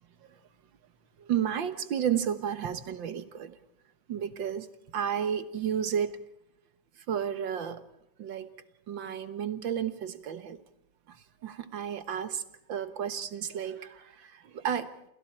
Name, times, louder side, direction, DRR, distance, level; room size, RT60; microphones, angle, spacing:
voice 1, 1.2-3.6 4.1-4.7 4.9-6.2 7.1-7.8 8.2-8.5 8.9-10.6 11.1-11.2 11.4-12.4 12.7-14.9, right 8 dB, 70° right, 11 dB, 1.9 m, -32 dB
28.5 x 28.0 x 4.4 m, 0.81 s
omnidirectional pair, 2.1 m